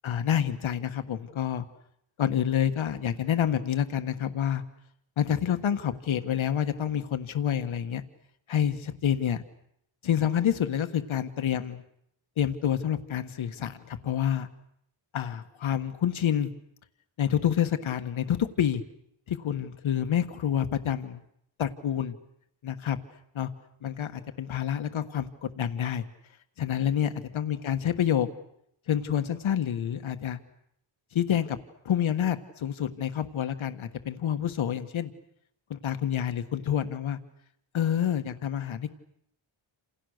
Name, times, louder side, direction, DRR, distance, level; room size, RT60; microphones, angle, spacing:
voice 1, 0.0-1.6 2.2-4.6 5.2-8.0 8.5-9.4 10.0-11.8 12.4-14.5 15.1-16.5 17.2-18.8 19.3-21.2 21.6-22.2 22.6-23.0 23.3-23.5 23.8-26.0 26.6-28.3 28.9-30.4 31.1-31.6 31.8-35.1 35.7-37.2 37.7-38.9, left 9 dB, 75° left, 8 dB, 1.5 m, -28 dB
29.0 x 27.5 x 6.6 m, 0.75 s
wide cardioid pair, 175°, 48 cm